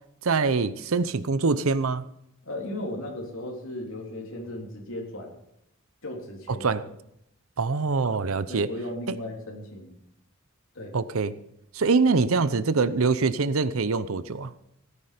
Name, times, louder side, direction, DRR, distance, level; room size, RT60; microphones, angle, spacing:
voice 1, 0.2-2.0 6.5-6.8 7.6-8.7 10.9-11.3 11.7-14.5, right 4 dB, 80° right, 15 dB, 0.7 m, -24 dB
voice 2, 2.4-5.4 6.0-6.7 8.5-10.0 10.7-10.9, left 1 dB, 70° left, -1 dB, 3.3 m, -36 dB
17.0 x 9.9 x 5.1 m, 0.79 s
head